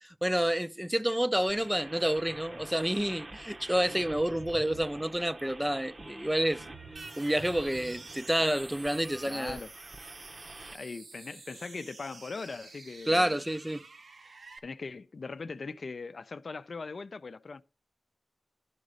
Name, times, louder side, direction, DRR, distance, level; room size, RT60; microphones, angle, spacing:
voice 1, 0.0-6.6 7.2-9.6 13.1-13.8, right 1 dB, 10° right, 0.5 m, -29 dB
sound 1, 1.5-10.8, right 2 dB, 45° right, 0.8 m, -46 dB
sound 2, 7.0-14.6, right 3 dB, 80° right, 1.3 m, -49 dB
voice 2, 9.2-9.7 10.7-13.3 14.6-17.6, left 4 dB, 65° left, 0.5 m, -40 dB
11.0 x 4.1 x 6.2 m
wide cardioid pair, 75°, 0 cm